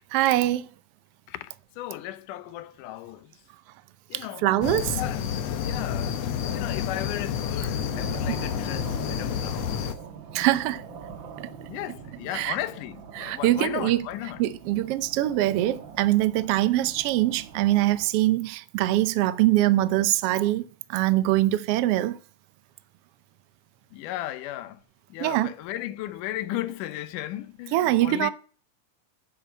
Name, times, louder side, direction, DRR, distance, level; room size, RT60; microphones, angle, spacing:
voice 1, 0.1-0.7 4.1-5.0 10.3-10.8 12.3-12.6 13.2-14.1 14.4-20.6 20.9-22.2 25.2-25.5 27.7-28.3, right 15 dB, 90° right, 1.3 m, -23 dB
voice 2, 1.3-3.3 4.1-4.5 5.0-5.2 5.6-6.2 6.5-9.9 11.7-14.4 23.9-24.8 25.1-28.3, left 14 dB, 80° left, 2.3 m, -35 dB
sound 1, 4.6-10.0, left 8 dB, 65° left, 1.9 m, -29 dB
sound 2, 7.8-18.1, right 6 dB, 55° right, 1.4 m, -43 dB
9.9 x 7.8 x 9.5 m
omnidirectional pair, 3.7 m